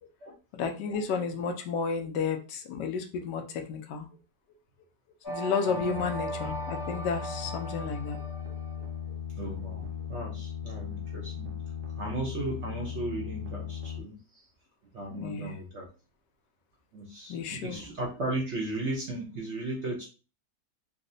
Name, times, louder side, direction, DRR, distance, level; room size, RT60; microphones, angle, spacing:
voice 1, 0.5-4.1 5.3-8.2 15.1-15.6 17.3-17.8, left 5 dB, 80° left, 5 dB, 1.2 m, -32 dB
sound 1, 5.2-8.9, right 2 dB, 20° left, 0.5 m, -38 dB
sound 2, 5.9-14.0, left 8 dB, 80° right, 1.4 m, -38 dB
voice 2, 9.4-11.5 12.0-14.4 14.9-15.9 16.9-20.0, right 2 dB, 60° right, -2 dB, 0.7 m, -36 dB
3.8 x 2.0 x 2.6 m, 0.34 s
omnidirectional pair, 1.9 m